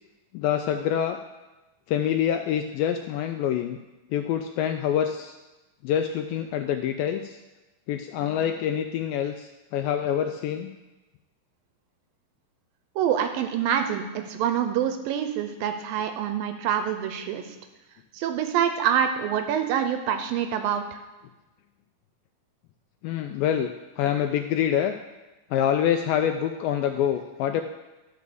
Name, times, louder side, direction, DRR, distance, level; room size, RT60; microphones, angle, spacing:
voice 1, 0.3-1.2 1.9-3.8 4.1-5.4 5.8-7.4 7.9-10.7 23.0-24.9 25.5-27.6, left 9 dB, 80° left, 6 dB, 2.1 m, -26 dB
voice 2, 13.0-17.6 18.1-21.0, right 9 dB, 80° right, 7 dB, 2.2 m, -26 dB
12.0 x 4.9 x 6.7 m, 1.1 s
omnidirectional pair, 4.4 m